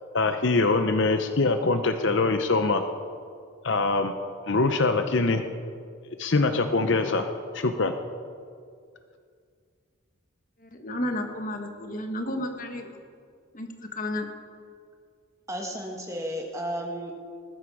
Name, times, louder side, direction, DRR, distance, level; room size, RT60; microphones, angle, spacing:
voice 1, 0.1-2.8 3.6-4.1 4.5-5.4 6.2-7.3 7.5-7.9, left 3 dB, 55° left, 7 dB, 0.7 m, -23 dB
voice 2, 10.6-13.0 13.5-14.3, left 1 dB, 40° left, 4 dB, 1.5 m, -32 dB
voice 3, 15.5-17.1, equal, 15° right, 2 dB, 1.5 m, -33 dB
19.5 x 14.0 x 4.9 m, 2.2 s
head